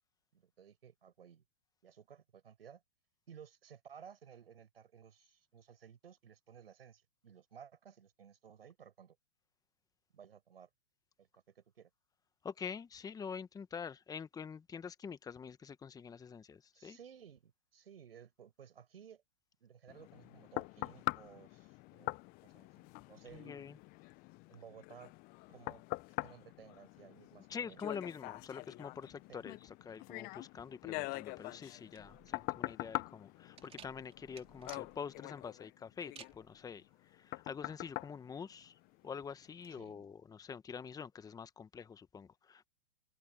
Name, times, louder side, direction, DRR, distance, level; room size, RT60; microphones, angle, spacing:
voice 1, 0.3-1.4 1.8-2.8 3.3-9.2 10.1-10.7 11.2-11.9 16.7-19.2 19.6-23.6 24.5-25.1 25.5-25.8 26.2-27.9 29.3-29.4 39.8-40.0, right 8 dB, 80° right, 5.5 m, -57 dB
voice 2, 12.4-17.0 23.3-23.8 27.5-38.8 39.0-42.7, left 6 dB, 10° left, 1.3 m, -46 dB
sound 1, 19.9-39.1 39.6-39.8, left 25 dB, 30° left, 0.7 m, -44 dB
sound 2, 31.9-39.5, right 8 dB, 20° right, 4.0 m, -58 dB
open air
hypercardioid pair, 120°, 29 cm